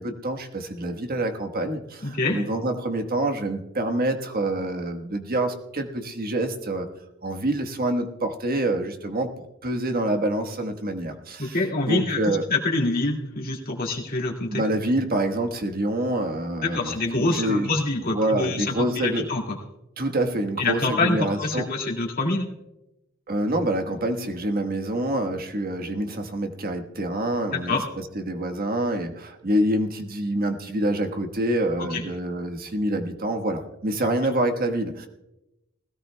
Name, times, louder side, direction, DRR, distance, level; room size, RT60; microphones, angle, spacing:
voice 1, 0.0-6.9 7.2-11.6 11.9-12.5 14.5-17.7 18.1-19.3 20.0-21.8 23.3-27.8 28.1-35.1, right 1 dB, 50° right, 5 dB, 1.3 m, -26 dB
voice 2, 2.0-2.5 11.4-14.6 16.6-19.6 20.6-22.5 27.5-27.9 31.8-32.0, left 2 dB, 45° left, -1 dB, 2.1 m, -26 dB
20.0 x 16.5 x 2.2 m, 0.93 s
head